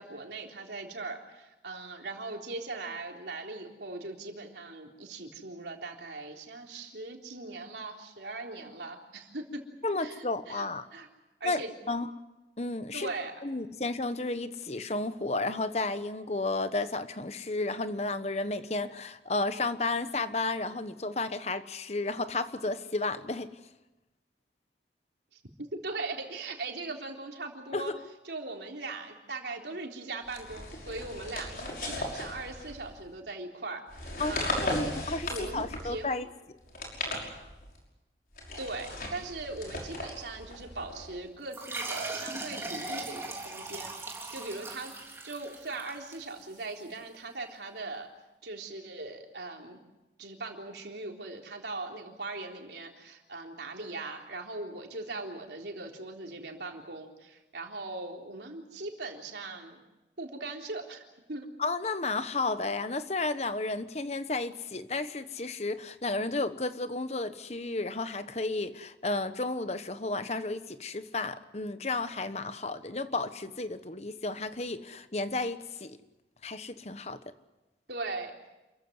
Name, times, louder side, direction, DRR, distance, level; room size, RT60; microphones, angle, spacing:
voice 1, 0.0-9.6 10.0-11.1 11.4-11.7 12.9-13.3 25.3-25.4 25.7-27.9 28.3-34.9 35.3-36.1 38.6-44.9 45.2-48.1 48.4-49.8 50.2-59.8 60.2-61.0 61.3-61.5 77.9-78.3, right 3 dB, 80° right, 2 dB, 3.7 m, -40 dB
voice 2, 9.8-10.8 11.4-12.1 12.6-13.1 13.4-23.5 27.7-28.0 34.2-36.3 61.6-76.0 76.4-77.2, left 3 dB, 40° left, 11 dB, 1.1 m, -32 dB
sound 1, 30.3-33.0 33.9-36.1 36.6-37.8 38.3-41.2, left 2 dB, 55° left, 5.8 m, -37 dB
sound 2, 41.5-46.7, right 2 dB, 15° right, 3.5 m, -39 dB
28.0 x 15.0 x 9.7 m, 1.0 s
head